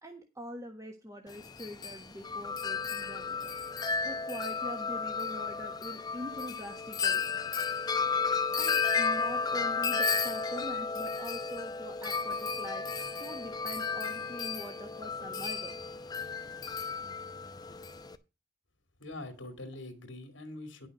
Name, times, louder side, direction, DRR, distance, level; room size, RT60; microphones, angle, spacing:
voice 1, 0.0-3.5 4.0-7.2 8.6-12.8 13.2-15.7, equal, 15° right, 1.4 m, -44 dB
Wind chime, 1.3-18.1, left 5 dB, 20° left, 0.8 m, -33 dB
voice 2, 19.0-20.9, left 2 dB, 90° left, 2.4 m, -43 dB
10.5 x 6.3 x 6.3 m
head